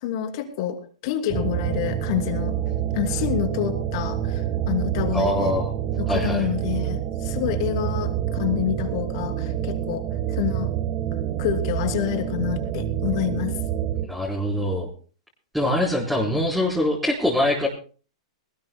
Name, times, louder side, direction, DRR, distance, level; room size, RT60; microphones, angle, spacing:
voice 1, 0.0-2.5 2.9-5.6 6.0-10.7 11.4-13.5, left 11 dB, 55° left, 5 dB, 2.9 m, -28 dB
sound 1, 1.3-14.1, right 10 dB, 40° right, 1.3 m, -27 dB
voice 2, 5.1-5.7 6.1-6.5 14.0-14.9 15.5-17.7, left 1 dB, ahead, -4 dB, 4.1 m, -23 dB
21.5 x 19.0 x 2.2 m, 0.39 s
hypercardioid pair, 130°, 3 cm